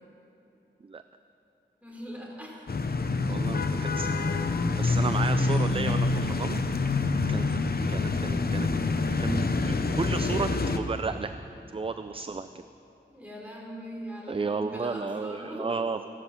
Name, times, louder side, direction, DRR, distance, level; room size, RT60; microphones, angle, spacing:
voice 1, 1.8-2.6 2.9-3.0 13.1-15.8, equal, 5° right, -2 dB, 3.6 m, -41 dB
sound 1, 2.7-10.8, left 3 dB, 55° left, 0.9 m, -26 dB
voice 2, 3.2-4.1 4.8-6.6 7.3-7.5 7.9-8.7 9.0-11.4 11.7-12.5 14.3-16.2, right 4 dB, 30° right, 10 dB, 0.4 m, -33 dB
14.5 x 12.0 x 7.2 m, 3.0 s
wide cardioid pair, 85°, 19 cm